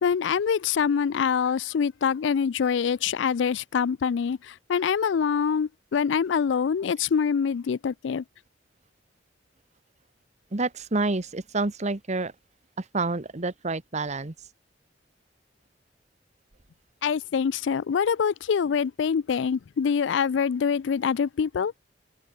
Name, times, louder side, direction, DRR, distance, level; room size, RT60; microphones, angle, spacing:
voice 1, 0.0-8.2 17.0-21.7, left 6 dB, 75° left, 0.4 m, -25 dB
voice 2, 10.5-12.3 12.8-14.3, right 3 dB, 40° right, 1.1 m, -28 dB
head